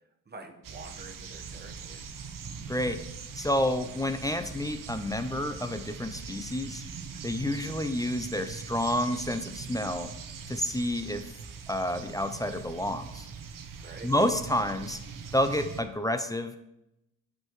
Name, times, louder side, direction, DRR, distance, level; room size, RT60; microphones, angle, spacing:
voice 1, 0.3-2.0 13.8-14.1, right 3 dB, 20° right, 3 dB, 1.1 m, -47 dB
sound 1, 0.6-15.8, right 6 dB, 50° right, 0.9 m, -42 dB
voice 2, 2.7-3.0 3.3-6.8 7.2-10.1 10.5-11.3 11.7-13.3 14.0-15.0 15.3-16.6, left 1 dB, 10° left, 9 dB, 0.5 m, -29 dB
7.7 x 5.7 x 3.1 m, 0.86 s
supercardioid pair, 65°, 43 cm